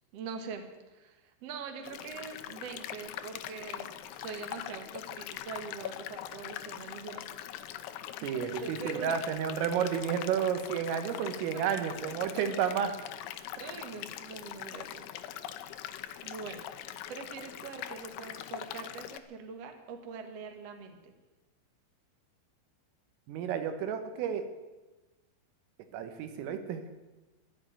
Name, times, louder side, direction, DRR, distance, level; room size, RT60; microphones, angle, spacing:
voice 1, 0.1-7.3 8.2-9.2 10.9-11.0 12.1-12.7 13.6-15.0 16.2-16.6 17.1-21.1, right 5 dB, 70° right, 5 dB, 1.5 m, -43 dB
sound 1, 1.8-19.2, left 11 dB, 90° left, 2.2 m, -42 dB
voice 2, 8.2-12.9 23.3-24.5 25.9-26.8, right 8 dB, 85° right, 7 dB, 4.0 m, -31 dB
13.5 x 11.5 x 9.1 m, 1.1 s
omnidirectional pair, 5.7 m